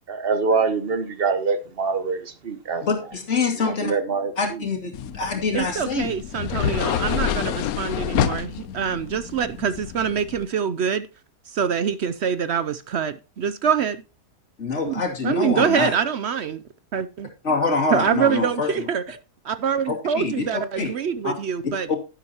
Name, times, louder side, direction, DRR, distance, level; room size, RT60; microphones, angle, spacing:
voice 1, 0.1-2.9 3.6-4.6, right 4 dB, 40° right, 1.3 m, -24 dB
voice 2, 2.8-3.9 4.4-6.1 14.6-15.9 17.4-18.9 19.9-20.4 20.8-20.9 21.2-21.3, left 4 dB, 45° left, 2.8 m, -25 dB
sound 1, 4.9-10.4, left 9 dB, 70° left, 1.1 m, -28 dB
voice 3, 5.5-11.1 11.5-14.0 14.8-16.6 16.9-17.3 17.9-19.2 19.4-21.9, right 7 dB, 65° right, 0.7 m, -25 dB
11.0 x 11.0 x 2.9 m
omnidirectional pair, 1.7 m